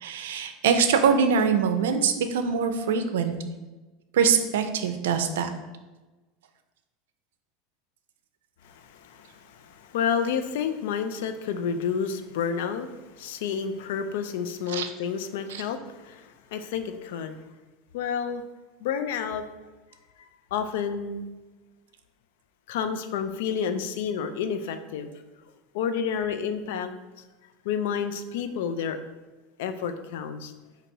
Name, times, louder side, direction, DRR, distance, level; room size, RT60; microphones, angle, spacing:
voice 1, 0.0-3.4 4.1-5.5 14.7-14.9 15.5-15.6, right 6 dB, 90° right, 8 dB, 0.5 m, -23 dB
voice 2, 8.6-12.9 13.2-17.4 17.9-18.4 18.8-19.4 20.5-21.3 22.7-25.1 25.7-26.9 27.6-29.0 29.6-30.5, left 7 dB, 80° left, 9 dB, 0.4 m, -30 dB
4.0 x 2.9 x 4.5 m, 1.2 s
supercardioid pair, 125°, 0 cm